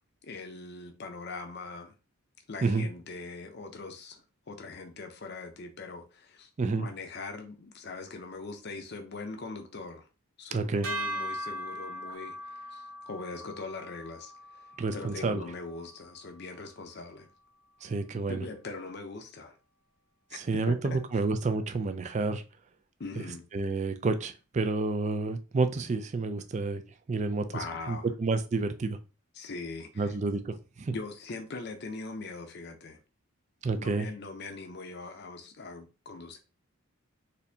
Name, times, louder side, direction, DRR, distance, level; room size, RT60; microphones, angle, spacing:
voice 1, 0.2-1.9 2.5-6.5 6.8-10.1 10.4-14.7 14.9-17.3 18.3-19.5 20.3-21.0 23.0-23.4 27.5-28.1 29.3-30.2 30.9-33.0 33.8-36.4, left 3 dB, 50° left, 0.6 m, -41 dB
voice 2, 10.5-10.9 14.8-15.4 17.8-18.4 20.3-22.4 23.5-26.8 27.1-29.0 30.0-30.9 33.6-34.1, right 3 dB, 35° right, 0.3 m, -29 dB
sound 1, 10.8-17.2, equal, 85° right, 1.0 m, -40 dB
4.2 x 2.6 x 2.7 m
head